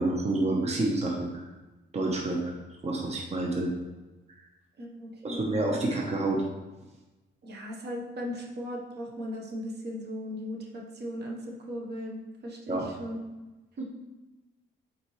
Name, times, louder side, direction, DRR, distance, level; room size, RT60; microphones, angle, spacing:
voice 1, 0.0-1.4 1.9-2.5 2.8-3.7 5.2-6.4 12.7-12.9, right 2 dB, 35° right, -1 dB, 1.1 m, -28 dB
voice 2, 4.8-5.6 7.4-13.2 13.8-13.9, equal, 55° right, -1 dB, 1.3 m, -37 dB
7.5 x 4.5 x 3.2 m, 1.1 s
cardioid pair, 90°, 20 cm